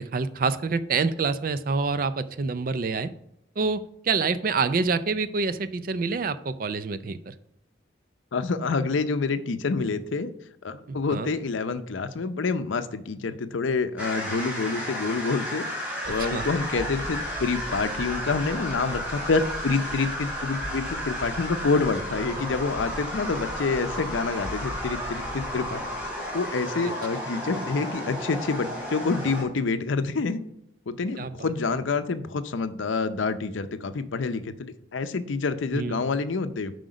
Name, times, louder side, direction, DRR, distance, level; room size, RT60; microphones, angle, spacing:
voice 1, 0.0-3.1 3.6-7.3 10.9-11.3 16.0-16.5 31.2-31.5 35.7-36.0, right 4 dB, 45° right, 14 dB, 0.4 m, -27 dB
voice 2, 8.3-10.3 10.6-25.8 26.3-30.4 30.9-34.5 34.9-36.7, left 4 dB, 80° left, 11 dB, 0.6 m, -27 dB
sound 1, 14.0-29.4, equal, 10° right, 2.8 m, -33 dB
sound 2, 16.0-26.5, equal, 30° left, 3.2 m, -41 dB
7.7 x 5.0 x 5.0 m, 0.79 s
head